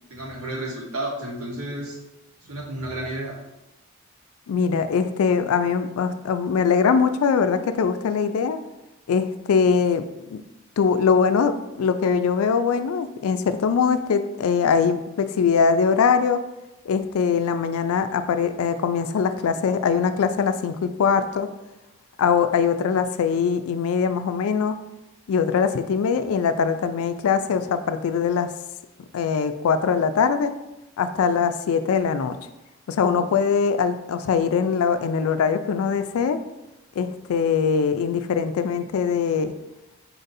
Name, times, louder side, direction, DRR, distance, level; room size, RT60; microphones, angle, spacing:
voice 1, 0.1-2.0 2.4-3.4, right 1 dB, 85° right, -1 dB, 1.0 m, -32 dB
voice 2, 4.5-8.6 9.1-10.4 10.8-16.4 16.9-21.5 22.2-24.8 25.3-28.5 29.1-30.5 31.0-32.4 32.9-36.4 37.0-39.5, left 6 dB, 80° left, 10 dB, 0.3 m, -22 dB
4.3 x 2.6 x 4.0 m, 0.95 s
head